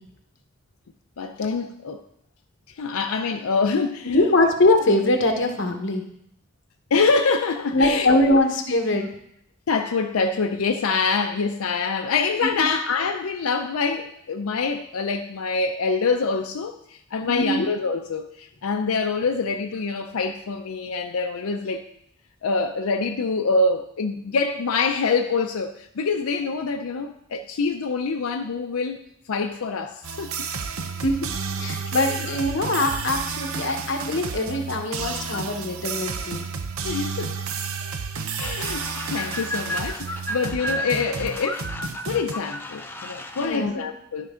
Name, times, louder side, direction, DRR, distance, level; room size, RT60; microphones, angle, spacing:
voice 1, 1.2-2.0 2.8-4.2 6.9-8.4 9.7-21.9 22.4-29.0 29.3-30.5 32.1-32.3 35.3-35.4 36.8-37.4 38.2-41.7 42.1-44.3, left 4 dB, 90° left, 4 dB, 0.5 m, -25 dB
voice 2, 4.0-6.0 7.7-9.1 12.4-12.6 17.2-17.7 31.0-31.3 31.6-36.5 43.4-43.8, left 2 dB, 55° left, 3 dB, 1.1 m, -22 dB
sound 1, 30.0-42.3, right 5 dB, 80° right, 0.7 m, -31 dB
sound 2, 38.4-43.6, equal, 10° left, 0.5 m, -33 dB
12.0 x 5.3 x 3.7 m, 0.74 s
head